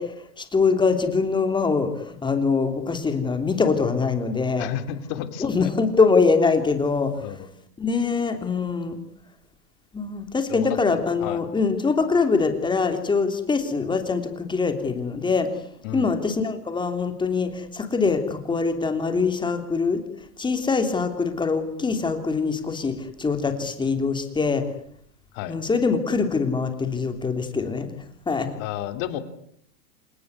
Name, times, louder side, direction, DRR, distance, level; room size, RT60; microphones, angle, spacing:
voice 1, 0.0-4.7 5.4-7.1 7.8-9.0 9.9-15.5 15.9-20.0 20.4-24.7 25.5-28.0 28.3-28.5, left 4 dB, 10° left, 7 dB, 3.2 m, -23 dB
voice 2, 4.6-5.7 7.2-7.5 10.5-11.4 15.8-16.1 25.3-25.5 28.6-29.2, left 11 dB, 40° left, 10 dB, 3.1 m, -32 dB
28.0 x 18.5 x 9.7 m, 0.68 s
hypercardioid pair, 140°, 49 cm